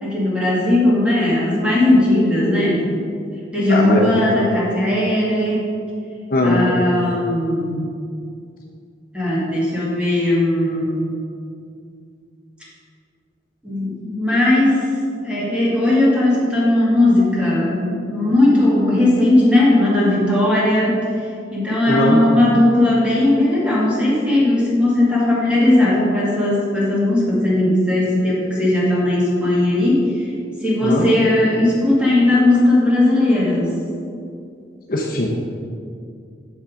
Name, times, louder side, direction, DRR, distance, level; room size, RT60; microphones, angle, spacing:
voice 1, 0.0-2.9 3.5-5.7 6.4-7.8 9.1-11.2 13.6-14.9 15.2-21.0 21.5-30.3 30.6-33.8, left 1 dB, 5° right, -7 dB, 2.2 m, -17 dB
voice 2, 3.7-4.2 6.3-6.7 21.9-22.2 30.8-31.1 34.9-35.3, left 1 dB, 50° left, -1 dB, 0.9 m, -18 dB
7.2 x 7.0 x 5.1 m, 2.4 s
head